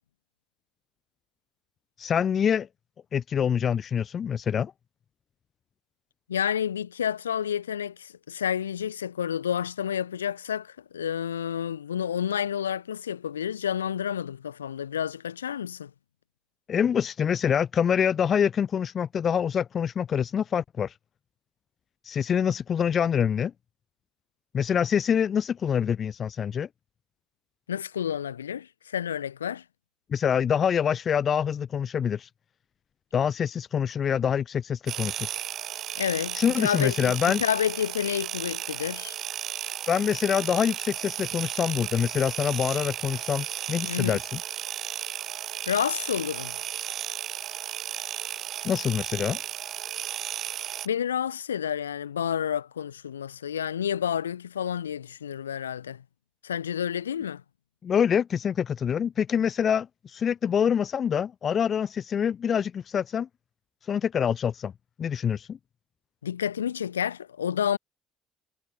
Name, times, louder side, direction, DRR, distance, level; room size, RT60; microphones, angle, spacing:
voice 1, 2.0-2.7 3.1-4.7 16.7-20.9 22.0-23.5 24.5-26.7 30.1-32.3 33.1-35.3 36.3-37.4 39.9-44.4 48.6-49.4 57.8-63.3 63.8-64.7 65.0-65.6, left 8 dB, 40° left, 2.3 m, -25 dB
voice 2, 6.3-15.9 27.7-29.6 35.9-39.1 43.8-44.2 45.7-46.6 50.8-56.0 56.4-57.4 66.2-67.8, left 9 dB, 80° left, 5.9 m, -30 dB
sound 1, 34.9-50.9, right 11 dB, 50° right, 4.1 m, -34 dB
figure-of-eight pair, 55°, 0 cm